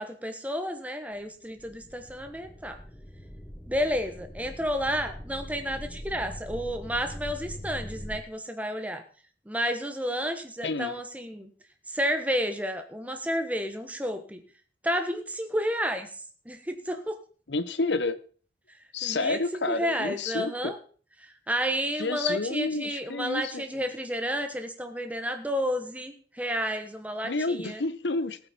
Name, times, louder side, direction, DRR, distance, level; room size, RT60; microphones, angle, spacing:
voice 1, 0.0-2.8 3.7-9.0 9.5-11.5 11.9-14.4 14.8-17.2 19.0-20.8 21.2-27.8, equal, 10° right, 6 dB, 1.3 m, -31 dB
sound 1, 1.2-1.3 1.6-8.2, equal, 10° left, 1.1 m, -42 dB
voice 2, 17.5-18.2 18.9-20.7 21.9-23.9 27.2-28.4, left 3 dB, 75° left, 14 dB, 1.0 m, -30 dB
19.5 x 8.7 x 4.4 m, 0.42 s
head